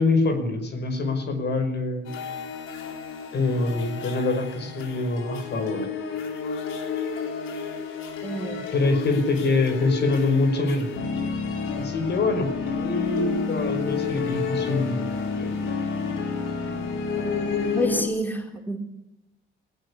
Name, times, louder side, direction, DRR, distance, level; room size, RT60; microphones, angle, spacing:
voice 1, 0.0-2.1 3.3-5.9 8.7-10.9 11.8-15.5, left 3 dB, 60° left, 7 dB, 5.5 m, -25 dB
sound 1, 2.1-18.0, left 5 dB, 80° left, 4.1 m, -30 dB
voice 2, 8.2-8.6 17.7-18.8, equal, 10° left, 4 dB, 3.9 m, -28 dB
19.0 x 18.5 x 10.0 m, 0.86 s
cardioid pair, 90°, 20 cm